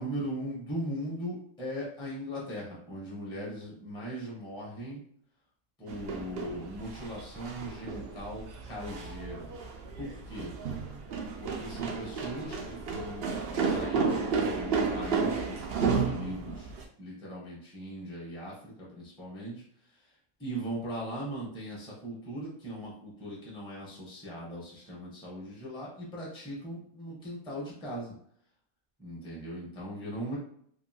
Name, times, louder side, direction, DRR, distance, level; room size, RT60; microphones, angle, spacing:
voice 1, 0.0-5.0 5.8-9.5 10.0-10.5 11.4-16.7 17.0-19.6 20.4-28.1 29.0-30.4, equal, 5° left, -5 dB, 0.6 m, -39 dB
sound 1, 5.9-16.8, right 5 dB, 70° right, 0.6 m, -32 dB
2.7 x 2.5 x 2.7 m, 0.63 s
omnidirectional pair, 1.5 m